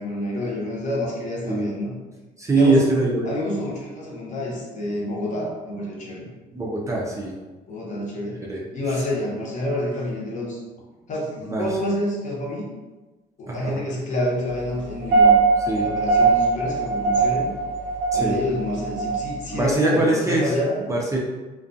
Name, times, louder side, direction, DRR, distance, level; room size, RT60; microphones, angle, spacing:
voice 1, 0.0-1.9 2.5-2.8 3.2-6.3 7.7-8.4 8.7-10.6 11.1-12.7 13.4-15.4 15.7-17.6 18.1-20.8, left 1 dB, 45° left, -4 dB, 0.8 m, -28 dB
voice 2, 2.4-3.3 6.5-7.3 8.5-8.6 11.4-11.6 13.5-13.8 15.7-15.9 18.1-18.4 19.5-20.5 20.9-21.2, right 2 dB, 20° right, -3 dB, 0.4 m, -22 dB
sound 1, 14.9-19.7, right 4 dB, 75° right, 0.5 m, -21 dB
2.3 x 2.2 x 2.5 m, 1.2 s
cardioid pair, 110°, 17 cm